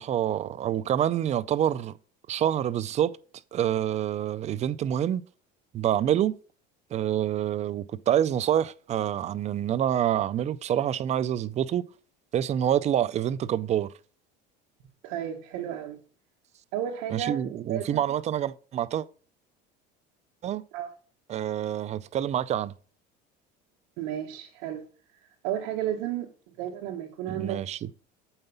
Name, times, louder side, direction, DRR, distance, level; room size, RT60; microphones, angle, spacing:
voice 1, 0.0-2.0 2.3-3.2 3.5-5.2 5.7-6.4 6.9-11.8 12.3-13.9 17.1-19.1 20.4-20.6 21.3-22.7 27.3-27.9, right 10 dB, 35° right, 0.4 m, -27 dB
voice 2, 15.0-16.0 16.7-17.4 17.7-18.0 20.7-20.9 24.0-24.8 25.4-27.6, right 10 dB, 85° right, 1.3 m, -33 dB
7.8 x 5.6 x 5.4 m
cardioid pair, 140°, 21 cm